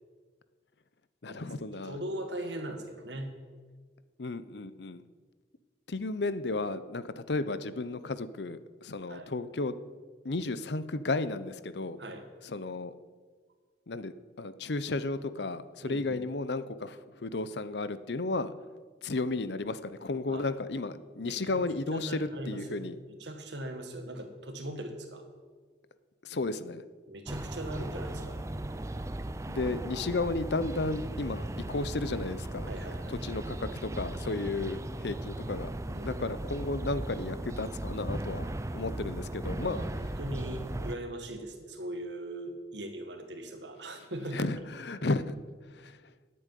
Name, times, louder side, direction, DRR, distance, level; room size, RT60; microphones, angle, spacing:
voice 1, 1.2-2.0 4.2-5.0 5.9-9.7 10.2-12.0 12.4-12.9 13.9-18.5 19.0-23.0 26.2-26.8 29.5-32.7 33.1-35.7 36.0-39.8 44.3-45.3 45.7-46.0, left 3 dB, 70° left, 14 dB, 0.7 m, -33 dB
voice 2, 1.8-3.4 9.1-9.3 12.0-12.2 15.8-16.2 20.3-20.5 21.2-21.6 21.9-22.8 23.2-25.3 27.1-28.4 29.6-29.8 32.7-33.2 34.2-34.4 35.9-36.2 39.5-44.5 45.0-45.1, right 1 dB, 75° right, 6 dB, 1.8 m, -40 dB
sound 1, 27.3-41.0, right 1 dB, 15° right, 0.4 m, -37 dB
10.5 x 8.6 x 9.2 m, 1.5 s
head